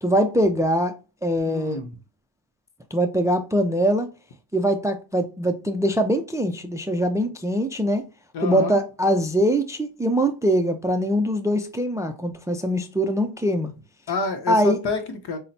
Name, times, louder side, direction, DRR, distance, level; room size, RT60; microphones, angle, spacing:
voice 1, 0.0-0.9 1.2-1.8 2.9-4.1 4.5-8.1 8.4-13.7 14.5-14.8, equal, 10° right, 0.3 m, -22 dB
voice 2, 1.4-1.9 8.3-8.8 14.1-15.4, left 3 dB, 65° left, 0.8 m, -28 dB
5.6 x 2.1 x 2.6 m
cardioid pair, 85°, 43 cm